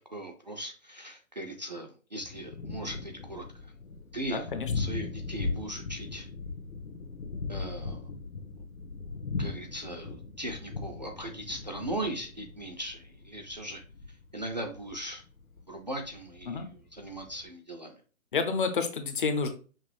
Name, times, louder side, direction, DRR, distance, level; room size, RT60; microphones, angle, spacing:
voice 1, 0.1-3.7 4.1-4.5 4.7-6.3 7.5-8.1 9.4-13.8 14.3-15.2 15.7-18.0, right 1 dB, 35° right, 2 dB, 0.4 m, -39 dB
Thunder, 2.2-17.5, left 4 dB, 75° left, 1.1 m, -39 dB
voice 2, 4.3-4.7 16.5-16.7 18.3-19.5, left 5 dB, 40° left, 8 dB, 0.6 m, -29 dB
5.9 x 2.4 x 3.2 m, 0.37 s
hypercardioid pair, 145°, 42 cm